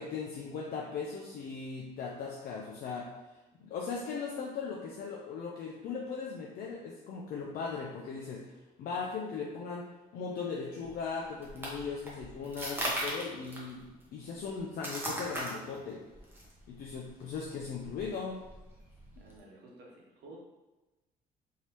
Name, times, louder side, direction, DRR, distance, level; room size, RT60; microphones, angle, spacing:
voice 1, 0.0-3.1 3.6-8.5 8.8-9.9 10.1-13.9 14.1-16.0 16.7-18.4, left 5 dB, 60° left, -1 dB, 0.5 m, -38 dB
sound 1, 10.8-19.4, right 1 dB, 15° right, 0.9 m, -40 dB
voice 2, 19.2-20.4, right 2 dB, 70° right, -2 dB, 0.9 m, -52 dB
3.1 x 2.8 x 2.9 m, 1.1 s
cardioid pair, 110°, 17 cm